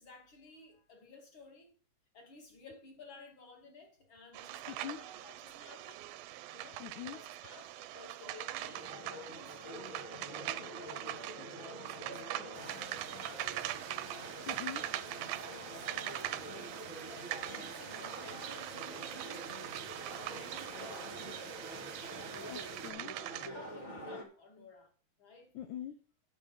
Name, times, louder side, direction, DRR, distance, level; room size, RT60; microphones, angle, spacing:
voice 1, 0.0-1.7 2.1-6.0 6.5-6.8 7.1-10.0 10.4-13.7 14.1-19.5 20.0-21.2 23.6-24.9 25.2-25.5, left 4 dB, 35° left, 3.0 m, -55 dB
sound 1, 4.3-23.5, right 14 dB, 90° right, 2.4 m, -43 dB
voice 2, 4.7-5.0 6.8-7.2 14.5-14.8 22.5-23.1 25.6-25.9, left 11 dB, 75° left, 1.9 m, -43 dB
sound 2, 8.6-24.2, equal, 20° left, 1.3 m, -47 dB
sound 3, 12.5-22.9, right 7 dB, 70° right, 2.7 m, -48 dB
9.7 x 6.6 x 5.6 m
omnidirectional pair, 4.0 m